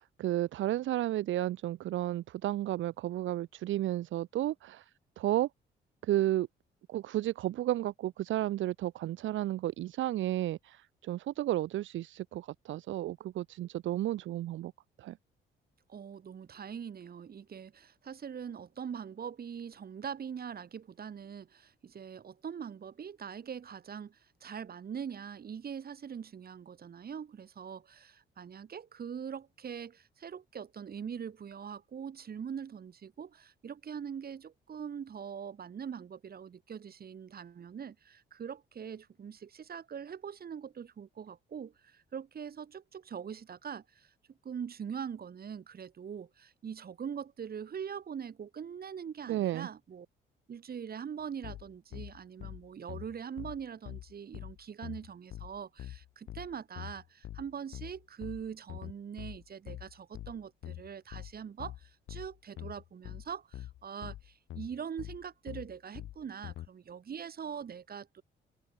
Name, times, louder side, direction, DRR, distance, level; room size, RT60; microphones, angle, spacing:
voice 1, 0.0-4.9 5.2-5.5 6.0-6.5 6.9-14.7 15.0-15.2 49.3-49.7, right 14 dB, 75° right, 0.9 m, -32 dB
voice 2, 15.9-50.1 50.5-68.2, right 7 dB, 50° right, 4.3 m, -42 dB
sound 1, 51.4-66.7, left 13 dB, 80° left, 2.2 m, -45 dB
open air
cardioid pair, 90°, 20 cm